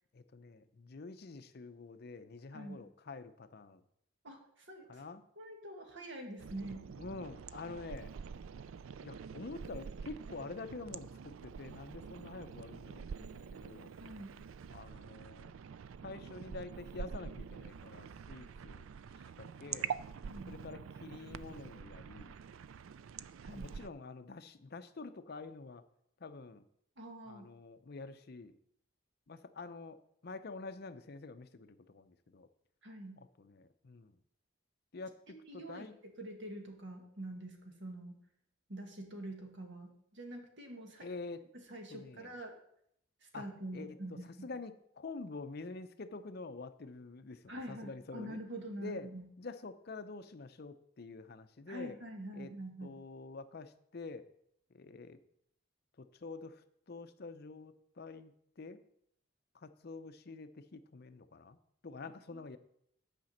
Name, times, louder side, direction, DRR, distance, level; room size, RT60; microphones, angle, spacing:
voice 1, 0.1-3.8 4.9-5.2 7.0-8.1 9.0-13.9 14.7-15.6 16.0-18.9 19.1-19.9 20.5-22.3 23.5-25.8 26.2-26.6 27.3-28.6 29.3-30.0 30.2-32.5 33.4-34.2 34.9-36.0 41.0-41.4 41.9-42.3 43.3-43.4 43.7-43.9 44.2-48.4 48.8-49.1 49.4-52.0 52.3-52.5 52.8-54.3 54.7-55.2 56.0-58.8 59.5-61.6 61.8-62.6, left 3 dB, 50° left, 11 dB, 0.6 m, -47 dB
voice 2, 4.2-5.0 5.4-6.9 14.0-14.4 20.2-20.6 23.4-23.7 27.0-27.5 32.8-33.2 35.3-38.2 38.7-41.1 41.5-42.5 43.2-44.5 47.5-49.3 51.7-53.0, right 1 dB, 60° right, 3 dB, 1.9 m, -46 dB
sound 1, 6.4-23.9, right 7 dB, 80° right, 0.4 m, -46 dB
9.2 x 5.1 x 7.2 m, 0.73 s
head